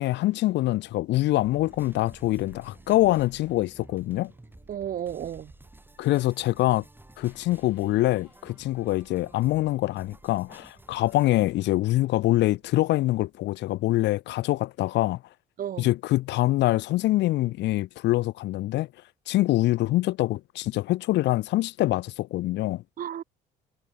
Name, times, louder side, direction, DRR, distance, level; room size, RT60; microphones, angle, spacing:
voice 1, 0.0-4.3 6.0-6.8 7.2-15.2 15.8-18.9 19.3-22.8, left 17 dB, 60° left, 0.4 m, -24 dB
sound 1, 0.6-13.4, right 14 dB, 70° right, 7.1 m, -65 dB
sound 2, 1.4-11.3, right 1 dB, 10° right, 3.0 m, -52 dB
voice 2, 4.7-5.5 15.6-15.9 23.0-23.2, right 10 dB, 45° right, 0.5 m, -33 dB
sound 3, 7.2-9.4, left 18 dB, 90° left, 7.1 m, -63 dB
hypercardioid pair, 50°, 20 cm